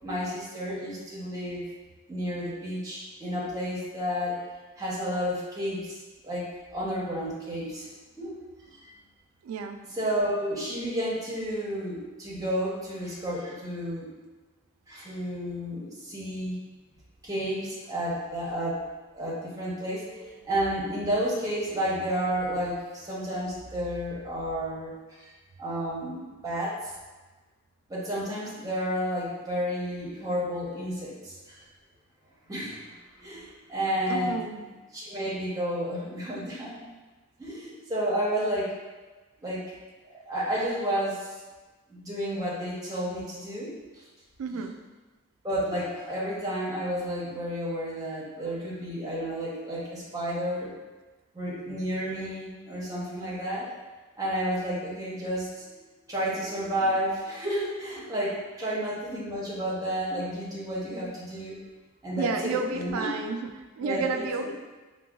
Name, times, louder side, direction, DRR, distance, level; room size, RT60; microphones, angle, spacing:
voice 1, 0.0-1.6 2.1-4.4 4.8-6.0 6.2-7.9 8.2-8.4 8.7-8.9 9.9-14.1 14.9-16.6 17.2-18.8 19.1-25.3 25.6-26.9 27.9-31.6 32.5-32.9 33.2-34.4 34.9-36.9 37.4-38.7 39.4-39.6 40.1-41.3 41.9-44.0 44.5-44.6 45.4-50.7 51.3-53.7 54.2-61.6 62.0-63.1 63.8-64.5, equal, 15° right, -7 dB, 0.7 m, -31 dB
voice 2, 9.4-9.8 34.1-34.6 44.4-44.8 62.2-64.6, right 4 dB, 75° right, 5 dB, 0.3 m, -31 dB
4.6 x 2.2 x 2.3 m, 1.2 s
head